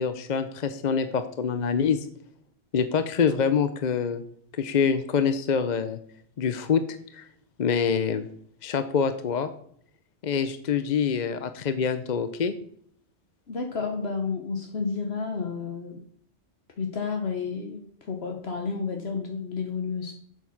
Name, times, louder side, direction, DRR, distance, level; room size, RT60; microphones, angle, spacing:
voice 1, 0.0-2.1 2.7-4.2 4.6-6.0 6.4-7.3 7.6-8.3 8.6-9.5 10.2-12.5, left 6 dB, 50° left, 10 dB, 0.7 m, -25 dB
voice 2, 13.5-16.0 16.8-20.1, left 5 dB, 65° left, 4 dB, 1.3 m, -31 dB
7.7 x 7.5 x 5.9 m, 0.63 s
omnidirectional pair, 1.2 m